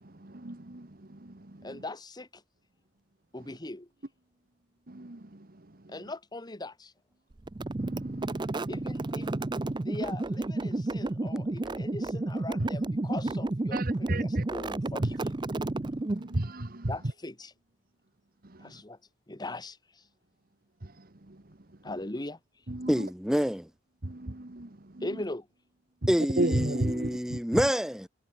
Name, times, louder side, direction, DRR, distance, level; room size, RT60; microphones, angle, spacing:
voice 1, 0.0-1.8 4.9-5.9 7.8-8.7 13.7-14.4 15.0-15.1 16.1-16.9 18.4-18.8 20.8-21.6 22.7-23.1 24.0-25.1 26.0-27.6, right 1 dB, 55° right, 1.5 m, -34 dB
voice 2, 1.6-2.4 3.3-3.9 5.9-6.9 8.7-9.3 9.8-15.3 16.9-17.5 18.6-19.0 19.3-20.1 21.8-22.7 25.0-25.5, left 2 dB, 25° left, 1.5 m, -40 dB
sound 1, 7.5-16.4, right 2 dB, 25° right, 0.5 m, -31 dB
voice 3, 22.9-23.7 26.1-28.1, equal, 5° right, 1.5 m, -27 dB
head